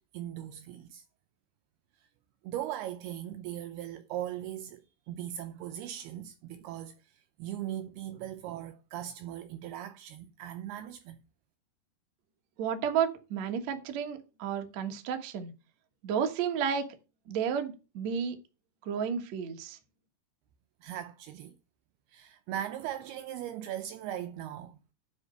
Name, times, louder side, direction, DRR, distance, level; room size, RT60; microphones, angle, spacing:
voice 1, 0.1-1.0 2.4-11.2 20.8-21.6 22.1-24.8, right 11 dB, 80° right, 2.4 m, -39 dB
voice 2, 12.6-15.5 16.0-16.9 17.3-18.4 18.8-19.8, right 7 dB, 65° right, 1.8 m, -32 dB
9.8 x 4.3 x 6.5 m
omnidirectional pair, 5.1 m